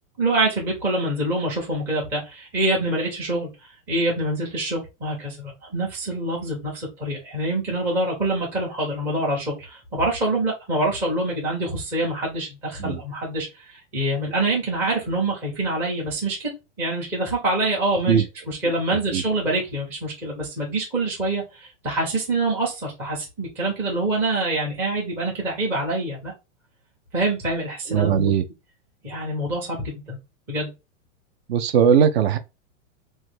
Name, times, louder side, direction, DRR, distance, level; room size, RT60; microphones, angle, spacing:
voice 1, 0.2-3.5 3.9-16.5 16.8-26.3 27.1-28.3 29.0-30.2 30.5-30.7, right 2 dB, 5° right, 0.4 m, -25 dB
voice 2, 27.9-28.4 31.5-32.4, right 8 dB, 60° right, 0.5 m, -19 dB
3.1 x 2.2 x 3.1 m
supercardioid pair, 165°, 37 cm